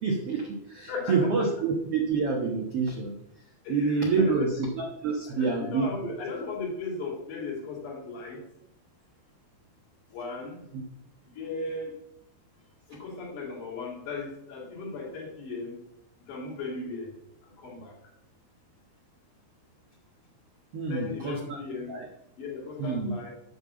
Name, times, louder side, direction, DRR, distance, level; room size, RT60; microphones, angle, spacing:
voice 1, 0.0-3.1 3.7-6.1 10.7-10.8 20.7-21.6 21.9-22.1 22.8-23.1, right 4 dB, 65° right, 1 dB, 1.5 m, -27 dB
voice 2, 0.9-1.5 3.7-4.7 5.3-8.4 10.1-10.6 11.4-11.9 12.9-15.8 16.3-17.1 17.6-17.9 20.9-22.0 22.4-23.3, left 3 dB, 55° left, -1 dB, 3.5 m, -37 dB
12.5 x 5.5 x 7.4 m, 0.77 s
omnidirectional pair, 4.7 m